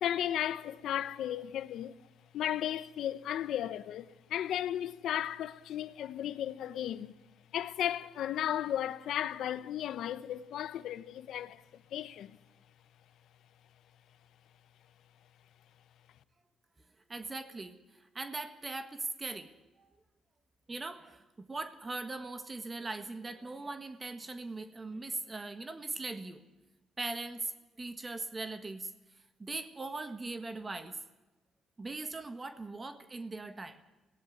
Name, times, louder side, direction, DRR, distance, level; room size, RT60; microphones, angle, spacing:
voice 1, 0.0-1.9 2.3-7.1 7.5-11.6 11.9-12.4, left 11 dB, 75° left, 0.9 m, -35 dB
voice 2, 17.1-19.9 20.7-26.4 27.0-27.5 27.8-28.9 29.4-31.0 31.8-33.8, right 3 dB, 25° right, 1.5 m, -40 dB
16.5 x 16.5 x 9.7 m
cardioid pair, 90°, 0 cm